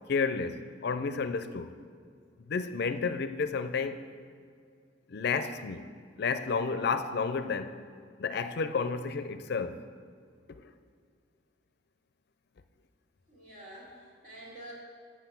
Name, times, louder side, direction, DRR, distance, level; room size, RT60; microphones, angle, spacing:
voice 1, 0.1-1.7 2.5-4.0 5.1-5.9 6.2-7.8 8.2-9.8 10.5-10.7, left 5 dB, 60° left, 11 dB, 0.4 m, -31 dB
voice 2, 13.3-14.7, right 1 dB, 50° right, -3 dB, 2.4 m, -48 dB
8.0 x 6.1 x 7.3 m, 2.2 s
head